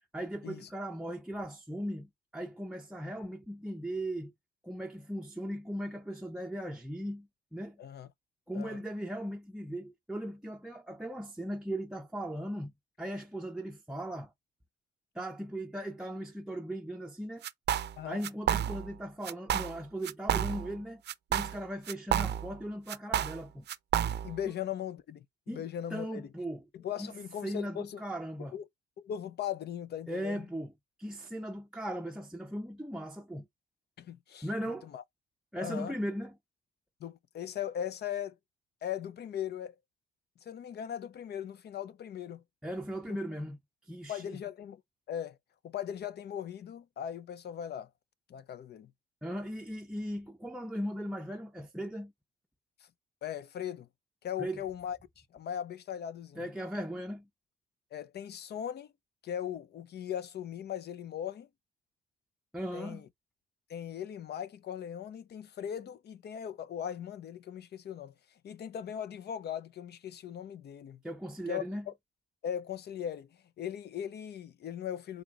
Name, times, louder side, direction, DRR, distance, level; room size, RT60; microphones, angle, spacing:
voice 1, 0.1-4.3 4.6-7.8 8.5-12.7 13.0-14.3 15.1-17.4 18.1-21.0 21.3-23.6 25.5-26.6 27.0-27.2 27.4-28.5 30.1-30.7 31.0-33.5 34.4-34.9 35.5-36.4 42.6-43.6 43.8-44.4 49.2-52.1 54.4-54.6 56.4-57.3 62.5-63.1 71.0-71.9, equal, 5° right, 0.6 m, -38 dB
sound 1, 17.4-18.0 18.2-19.0 19.2-19.8 20.0-20.8 21.1-22.6 22.9-24.4, right 10 dB, 60° right, 0.5 m, -31 dB
voice 2, 24.2-26.3 26.7-28.0 28.5-28.6 29.0-30.5 34.0-34.5 34.8-35.0 35.6-35.9 37.0-38.4 38.8-39.7 40.4-42.4 43.1-43.2 44.1-44.8 45.1-45.4 45.6-47.9 48.3-48.9 53.2-53.9 54.2-55.0 55.3-56.4 57.9-58.9 59.2-61.5 62.7-63.1 63.7-68.1 68.4-71.0 71.5-71.6 72.4-73.3 73.6-75.2, left 9 dB, 55° left, 0.6 m, -39 dB
4.4 x 3.8 x 2.4 m
cardioid pair, 90°, 20 cm